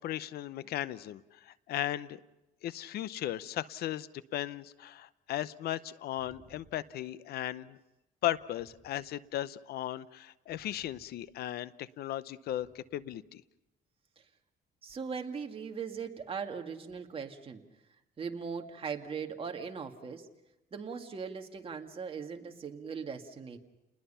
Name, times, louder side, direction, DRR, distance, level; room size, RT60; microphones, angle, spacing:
voice 1, 0.0-2.2 2.6-7.8 8.2-13.4, left 13 dB, 70° left, 17 dB, 0.7 m, -36 dB
voice 2, 14.8-17.6 18.2-20.3 20.7-23.6, right 6 dB, 35° right, 4 dB, 2.1 m, -39 dB
30.0 x 20.5 x 5.7 m, 0.95 s
cardioid pair, 110°, 17 cm